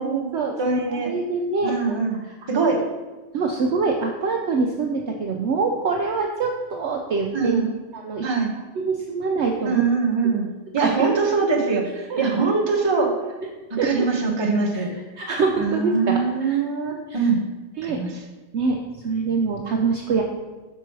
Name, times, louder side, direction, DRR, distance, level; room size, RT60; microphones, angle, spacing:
voice 1, 0.0-2.0 3.3-7.6 7.9-8.2 8.8-9.8 10.8-11.1 12.1-12.2 13.8-14.1 14.7-14.9 15.2-16.6 17.8-18.0 18.5-18.8 19.0-20.2, right 4 dB, 60° right, 1 dB, 0.8 m, -24 dB
voice 2, 0.6-1.1 1.6-2.2 2.5-2.8 7.3-7.7 8.2-8.5 9.6-10.5 10.7-13.1 13.7-14.9 15.6-17.4 17.8-18.2, right 4 dB, 25° right, -1 dB, 0.8 m, -22 dB
5.8 x 4.5 x 4.6 m, 1.2 s
omnidirectional pair, 1.5 m